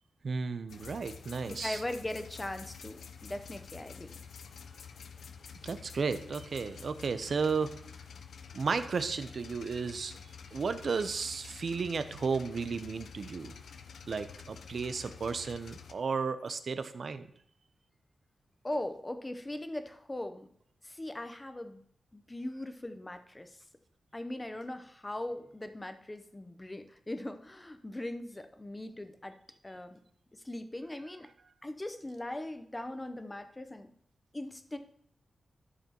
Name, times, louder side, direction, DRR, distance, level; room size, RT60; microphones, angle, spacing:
voice 1, 0.2-1.8 5.6-7.7 8.5-10.2 10.5-13.5 14.1-17.3, right 5 dB, 55° right, 11 dB, 0.6 m, -33 dB
sound 1, 0.7-15.9, left 6 dB, 85° left, 0.6 m, -49 dB
voice 2, 1.5-4.1 18.6-20.5 20.8-21.8 22.1-23.6 24.1-29.4 29.6-30.0 30.3-31.3 31.6-33.9 34.3-34.8, left 1 dB, 15° left, 9 dB, 0.7 m, -40 dB
11.0 x 6.7 x 2.9 m, 0.65 s
wide cardioid pair, 110°, 0 cm